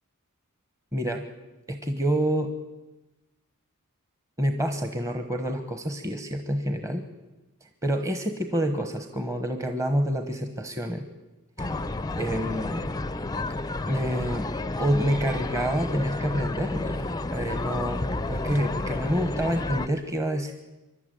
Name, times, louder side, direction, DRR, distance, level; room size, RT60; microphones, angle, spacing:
voice 1, 0.9-1.2 1.7-2.5 4.4-7.0 7.8-11.0 11.6-11.7 12.2-12.9 13.4-13.5 13.8-14.5 14.8-20.5, equal, 15° right, 6 dB, 1.1 m, -28 dB
sound 1, 11.6-19.9, left 2 dB, 15° left, 0.6 m, -31 dB
25.0 x 12.0 x 9.2 m, 1.1 s
head